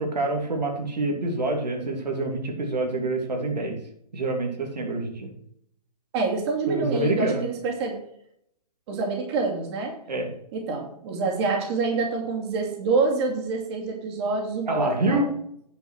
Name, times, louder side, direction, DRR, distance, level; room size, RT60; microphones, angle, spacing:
voice 1, 0.0-3.8 4.1-5.3 6.7-7.4 10.1-10.3 14.7-15.3, right 2 dB, 90° right, 2 dB, 2.8 m, -26 dB
voice 2, 6.1-8.0 8.9-9.9 10.5-15.2, right 4 dB, 40° right, 1 dB, 2.7 m, -27 dB
10.0 x 5.4 x 6.3 m, 0.73 s
hypercardioid pair, 140°, 21 cm